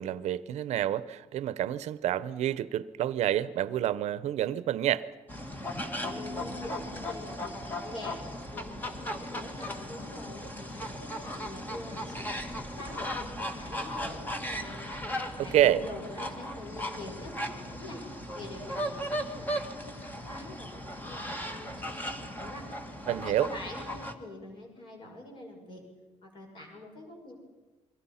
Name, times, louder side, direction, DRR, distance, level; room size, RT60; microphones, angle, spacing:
voice 1, 0.0-5.1 15.5-15.8 23.1-23.5, right 12 dB, 70° right, 0.8 m, -28 dB
sound 1, 5.3-24.1, equal, 15° left, 1.8 m, -37 dB
voice 2, 6.0-8.2 8.5-12.2 12.7-13.0 13.3-14.9 15.4-18.0 18.3-22.7 23.2-25.8 26.2-27.4, left 2 dB, 40° left, 6.4 m, -45 dB
29.5 x 23.5 x 5.8 m
cardioid pair, 170°, 12 cm